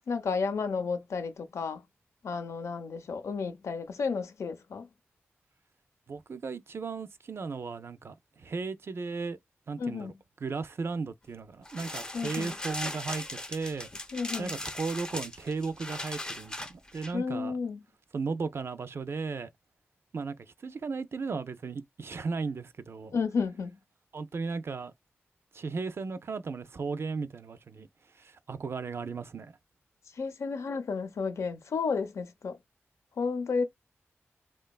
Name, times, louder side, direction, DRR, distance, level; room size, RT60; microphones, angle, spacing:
voice 1, 0.1-1.8 2.2-4.9 9.8-10.1 12.1-12.5 14.1-14.6 17.1-17.8 23.1-23.8 30.1-32.6 33.2-33.6, left 5 dB, 80° left, 0.5 m, -32 dB
voice 2, 6.1-9.4 9.7-10.1 10.4-13.9 14.4-17.5 18.1-19.5 20.1-20.4 20.6-23.1 24.1-24.9 25.5-27.9 28.2-29.6, right 4 dB, 55° right, 0.4 m, -35 dB
sound 1, 11.7-17.1, left 1 dB, 15° left, 0.4 m, -39 dB
2.9 x 2.2 x 2.2 m
cardioid pair, 50°, 5 cm